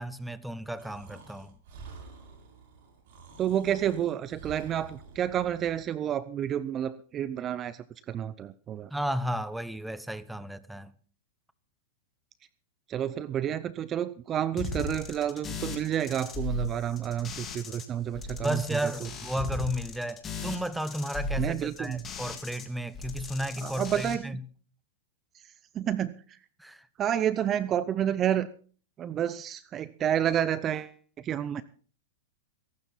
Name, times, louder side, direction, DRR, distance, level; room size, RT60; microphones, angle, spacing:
voice 1, 0.0-1.6 8.9-10.9 18.4-24.4 26.6-26.9, equal, 5° right, 1.0 m, -33 dB
Breathing, 0.8-5.9, right 4 dB, 60° right, 7.4 m, -49 dB
voice 2, 3.4-8.9 12.9-18.9 21.4-22.0 23.6-24.4 25.7-26.2 27.0-28.5 29.0-31.6, right 10 dB, 25° right, 0.6 m, -30 dB
sound 1, 14.6-17.9 18.1-22.7 22.9-24.2, left 2 dB, 20° left, 3.3 m, -37 dB
22.0 x 12.0 x 4.1 m
hypercardioid pair, 130°, 0 cm